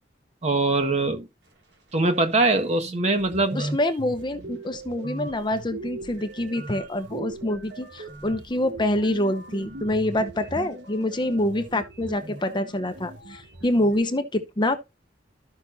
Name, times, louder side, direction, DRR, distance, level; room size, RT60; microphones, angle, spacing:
voice 1, 0.4-1.2 1.9-3.7, right 2 dB, 40° right, 1.5 m, -22 dB
sound 1, 2.4-2.5 2.8-14.0, right 2 dB, 80° right, 3.5 m, -39 dB
voice 2, 3.5-14.8, left 1 dB, 25° left, 0.9 m, -26 dB
14.0 x 6.0 x 2.8 m
head